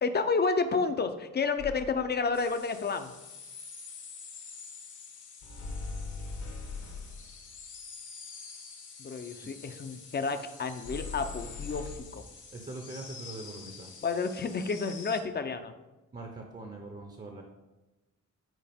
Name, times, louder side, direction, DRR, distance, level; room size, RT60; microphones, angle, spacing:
voice 1, 0.0-3.1 9.0-12.2 14.0-15.7, left 4 dB, 35° left, 8 dB, 0.6 m, -30 dB
sound 1, 1.6-2.2 5.4-7.5 10.8-12.0, left 4 dB, 65° left, 1.2 m, -40 dB
sound 2, 2.3-15.2, left 5 dB, 85° left, 1.5 m, -48 dB
voice 2, 12.5-13.9 16.1-17.4, right 2 dB, 30° right, 2 dB, 0.8 m, -42 dB
9.3 x 4.8 x 3.5 m, 1.1 s
wide cardioid pair, 130°, 30 cm